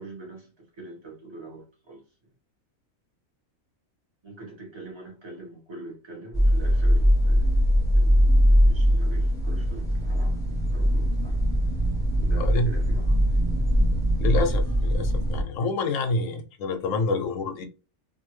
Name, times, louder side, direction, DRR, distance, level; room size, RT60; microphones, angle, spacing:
voice 1, 0.0-2.0 4.2-7.6 7.9-11.4 12.2-13.2, right 2 dB, 20° right, 1.0 m, -44 dB
sound 1, 6.3-15.4, equal, 5° left, 0.7 m, -21 dB
voice 2, 12.4-12.7 14.2-17.6, left 3 dB, 70° left, 0.9 m, -27 dB
2.7 x 2.5 x 3.1 m
omnidirectional pair, 1.4 m